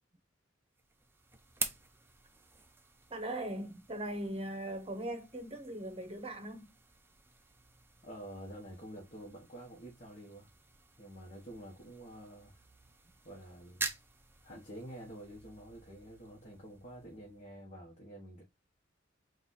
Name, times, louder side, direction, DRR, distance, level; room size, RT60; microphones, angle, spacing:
sound 1, 0.7-17.7, right 3 dB, 10° right, 0.6 m, -47 dB
voice 1, 3.1-6.7, right 1 dB, 30° right, 0.9 m, -39 dB
voice 2, 8.0-10.5 11.0-12.6 13.2-13.9 14.4-18.4, right 1 dB, 35° left, 1.3 m, -49 dB
4.1 x 2.5 x 4.0 m
head